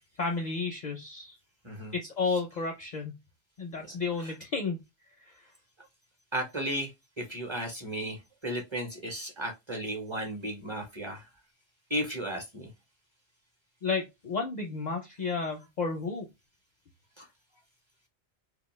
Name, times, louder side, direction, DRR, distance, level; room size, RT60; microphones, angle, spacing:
voice 1, 0.2-1.4 1.9-3.2 3.6-4.8 5.2-5.3 13.8-16.3, left 4 dB, 55° left, 0.5 m, -32 dB
voice 2, 6.3-6.9 7.2-11.3 11.9-12.7 17.2-17.3, right 1 dB, 30° right, 0.7 m, -34 dB
2.5 x 2.3 x 3.0 m
omnidirectional pair, 1.2 m